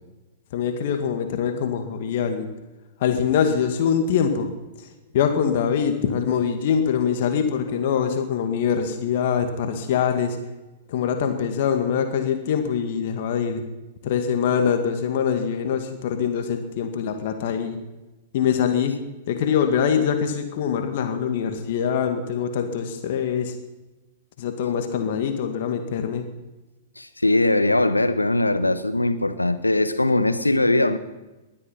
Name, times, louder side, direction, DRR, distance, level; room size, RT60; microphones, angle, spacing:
voice 1, 0.5-2.5 3.0-4.5 4.8-4.9 5.1-10.4 10.9-13.6 14.0-17.8 18.3-19.0 19.3-23.5 24.4-26.3, left 7 dB, 50° left, 2.1 m, -23 dB
voice 2, 27.0-31.0, left 2 dB, 90° left, 1.2 m, -20 dB
20.0 x 12.0 x 5.8 m
figure-of-eight pair, 105°, 0 cm